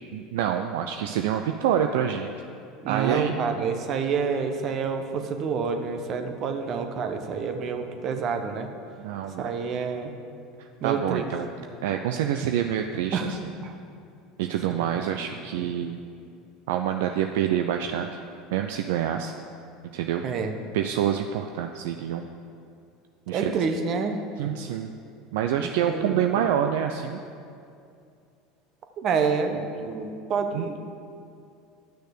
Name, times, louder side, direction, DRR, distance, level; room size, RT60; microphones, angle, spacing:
voice 1, 0.1-2.3 2.9-3.6 9.0-9.5 10.6-11.5 11.8-13.5 14.4-16.0 16.7-18.1 18.5-19.3 19.9-20.2 20.7-22.3 23.3-23.6 24.4-24.9 25.3-27.2 30.5-30.6, right 9 dB, 70° right, 5 dB, 0.4 m, -27 dB
voice 2, 2.8-8.7 9.4-10.1 10.8-11.2 13.1-13.3 13.6-13.7 14.7-15.0 15.3-15.7 20.2-20.5 23.3-24.2 25.6-26.4 29.0-30.8, right 5 dB, 50° right, 6 dB, 1.1 m, -28 dB
10.5 x 6.4 x 6.6 m, 2.5 s
hypercardioid pair, 80°, 0 cm